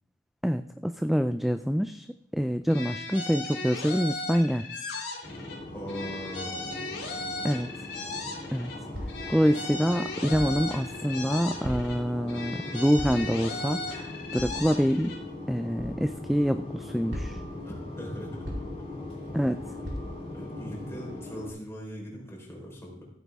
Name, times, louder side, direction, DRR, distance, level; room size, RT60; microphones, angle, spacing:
voice 1, 0.4-2.1 2.3-4.7 7.4-7.7 8.5-8.7 9.3-15.1 15.5-17.4 19.3-19.6, equal, ahead, 10 dB, 0.3 m, -26 dB
sound 1, 2.7-5.6 5.9-8.8 9.1-12.0 12.3-15.2, left 2 dB, 70° left, 3.5 m, -37 dB
sound 2, 5.2-21.5, left 2 dB, 35° left, 4.0 m, -40 dB
voice 2, 5.7-6.8 17.6-18.4 20.3-23.1, equal, 15° left, -2 dB, 4.2 m, -40 dB
sound 3, 8.9-9.3 10.3-10.6 11.6-12.1 13.0-13.3 14.4-14.6 15.8-16.0 17.1-17.5 18.4-18.8 19.8-20.0, equal, 80° right, 4.0 m, -36 dB
15.5 x 9.2 x 3.6 m, 0.71 s
head